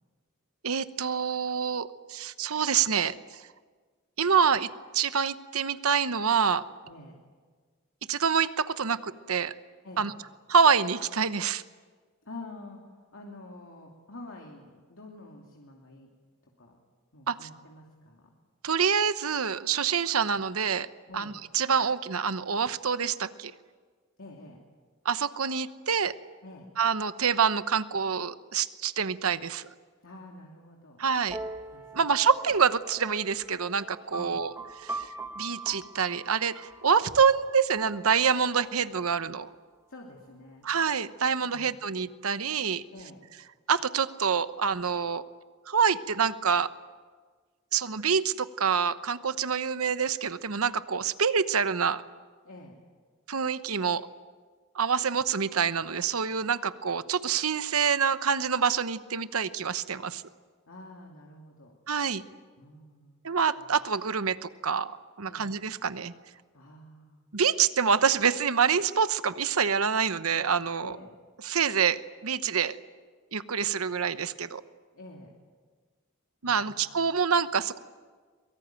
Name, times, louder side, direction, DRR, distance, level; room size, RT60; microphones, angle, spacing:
voice 1, 0.6-3.2 4.2-4.7 4.9-6.6 8.1-9.5 10.0-10.1 10.5-11.6 17.3-17.4 18.6-20.9 21.1-23.5 25.0-26.1 26.8-29.7 31.0-31.4 31.9-34.5 34.8-35.1 35.4-39.5 40.6-42.8 43.7-45.2 45.7-46.7 47.7-52.0 53.3-54.1 54.7-60.2 61.9-62.2 63.2-64.9 65.2-66.1 67.3-70.9 71.4-72.8 73.3-74.6 76.4-77.8, right 6 dB, 85° right, 13 dB, 1.0 m, -26 dB
voice 2, 6.8-7.2 9.8-10.1 12.2-16.1 16.6-16.8 17.1-18.3 21.1-21.3 24.2-24.6 26.4-26.7 30.0-31.0 31.7-32.2 34.1-34.4 39.9-40.7 41.4-41.7 42.9-43.3 52.4-52.8 60.7-61.7 62.6-63.2 63.6-63.7 65.3-65.6 66.5-67.3 70.8-71.2 74.9-75.3 76.4-77.1, left 2 dB, 70° left, -1 dB, 2.9 m, -47 dB
sound 1, 31.3-38.9, right 2 dB, 10° right, 1.2 m, -42 dB
23.0 x 23.0 x 9.1 m, 1.5 s
head